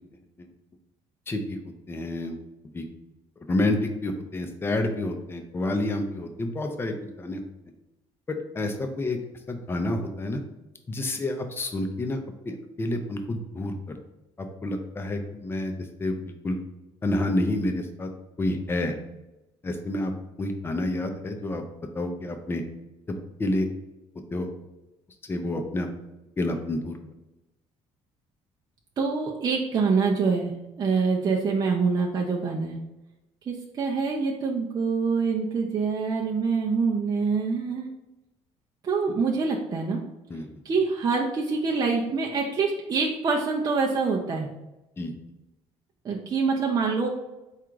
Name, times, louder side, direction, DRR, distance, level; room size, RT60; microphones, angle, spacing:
voice 1, 1.3-1.6 1.9-2.4 2.7-2.9 3.5-7.4 8.6-9.2 9.5-10.4 10.9-12.2 12.5-13.8 14.4-15.7 16.0-16.6 17.0-18.1 18.4-19.0 19.6-20.1 20.4-21.6 21.9-22.6 23.4-23.7 24.3-24.5 25.3-25.9 26.4-27.0 40.3-40.5 45.0-45.1, left 1 dB, 20° left, 5 dB, 0.5 m, -28 dB
voice 2, 29.0-30.5 30.8-32.8 33.5-37.9 38.8-40.0 40.6-44.5 46.0-47.1, right 4 dB, 35° right, -2 dB, 0.5 m, -25 dB
3.6 x 2.4 x 4.5 m, 1.0 s
cardioid pair, 115°, 12 cm